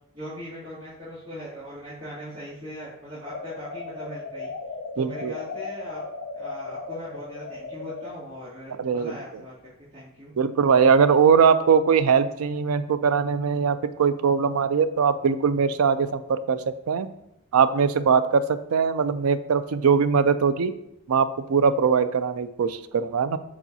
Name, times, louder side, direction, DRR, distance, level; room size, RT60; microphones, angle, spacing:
voice 1, 0.1-4.5 4.9-6.0 6.3-10.3, equal, 40° right, -13 dB, 2.4 m, -40 dB
sound 1, 3.3-8.1, left 3 dB, 75° left, 0.6 m, -36 dB
voice 2, 5.0-5.3 8.8-9.2 10.4-17.1 17.5-20.7 21.1-23.4, right 6 dB, 85° right, 12 dB, 0.4 m, -21 dB
7.3 x 5.9 x 2.8 m, 0.83 s
head